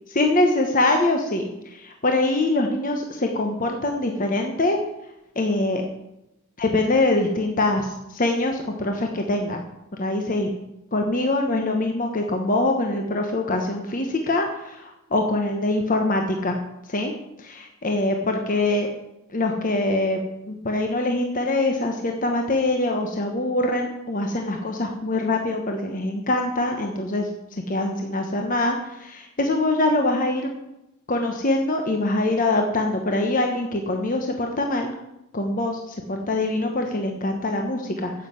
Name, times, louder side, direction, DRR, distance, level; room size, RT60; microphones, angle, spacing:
voice 1, 0.1-4.8 5.3-5.8 6.6-9.6 10.0-10.5 10.9-16.6 16.9-17.1 17.4-18.9 19.3-20.2 20.5-27.3 27.7-30.5 31.1-34.9 35.3-38.3, left 2 dB, 40° left, 3 dB, 1.2 m, -24 dB
9.9 x 7.6 x 8.2 m, 0.90 s
head